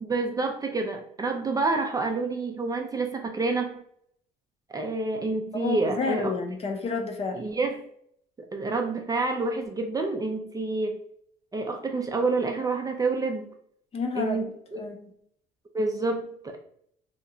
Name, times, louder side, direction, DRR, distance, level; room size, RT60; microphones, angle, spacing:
voice 1, 0.0-3.8 4.7-6.3 7.3-7.9 8.5-11.0 11.5-13.5 14.1-14.8 15.7-16.6, right 3 dB, 20° right, 3 dB, 0.4 m, -28 dB
voice 2, 5.5-7.4 8.6-8.7 13.9-15.1, left 4 dB, 35° left, 4 dB, 0.6 m, -30 dB
2.9 x 2.2 x 3.7 m, 0.68 s
cardioid pair, 110°, 17 cm